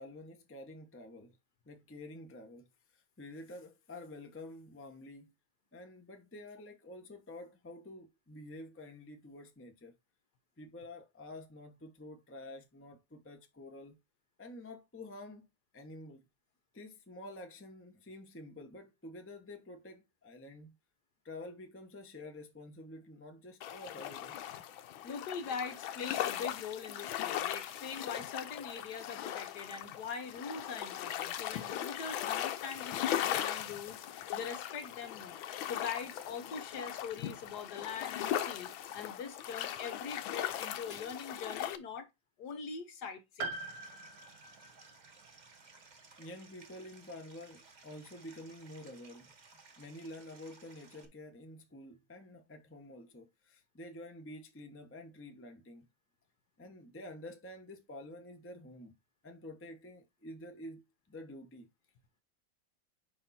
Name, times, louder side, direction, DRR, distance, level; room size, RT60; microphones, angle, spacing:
voice 1, 0.0-1.4 1.7-5.3 5.7-10.0 10.6-14.0 14.4-16.3 16.7-20.7 21.2-24.4 46.2-49.3 49.8-55.9 56.6-58.9 59.2-61.7, left 1 dB, 10° left, 0.6 m, -49 dB
sound 1, 23.6-41.8, left 11 dB, 85° left, 1.5 m, -38 dB
voice 2, 25.0-42.1 42.4-43.6, left 6 dB, 60° left, 1.4 m, -43 dB
Piano, 43.4-47.3 47.5-47.6 48.8-48.9, right 3 dB, 70° right, 1.6 m, -45 dB
Stream, 43.5-51.1, right 4 dB, 30° right, 0.9 m, -59 dB
9.4 x 3.5 x 4.2 m
omnidirectional pair, 2.1 m